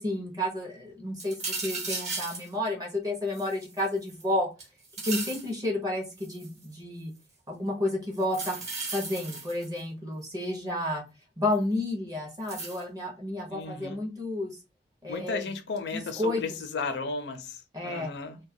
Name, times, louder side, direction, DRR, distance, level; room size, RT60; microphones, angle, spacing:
voice 1, 0.0-4.5 5.1-7.1 7.5-8.6 8.9-11.0 11.4-14.5 15.0-15.4 15.9-16.4 17.7-18.1, left 1 dB, 20° right, 0.6 m, -31 dB
sound 1, 1.2-2.5 3.3-4.2 4.6-5.5 6.2-6.6 8.2-9.8 11.5-11.6 12.5-12.8, right 3 dB, 40° right, 1.0 m, -36 dB
voice 2, 13.5-14.0 15.1-18.4, left 4 dB, 75° left, 0.5 m, -34 dB
2.2 x 2.1 x 2.6 m
head